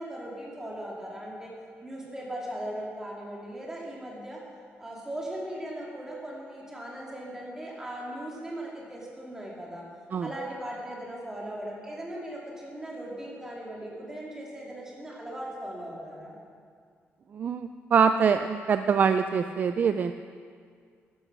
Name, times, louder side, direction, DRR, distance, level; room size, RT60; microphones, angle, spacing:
voice 1, 0.0-1.5 1.8-4.4 4.8-9.8 10.2-16.3, right 1 dB, 10° right, -4 dB, 2.8 m, -38 dB
voice 2, 17.3-20.1, right 6 dB, 40° right, 9 dB, 0.4 m, -24 dB
13.5 x 11.5 x 6.1 m, 2.1 s
wide cardioid pair, 165°, 5 cm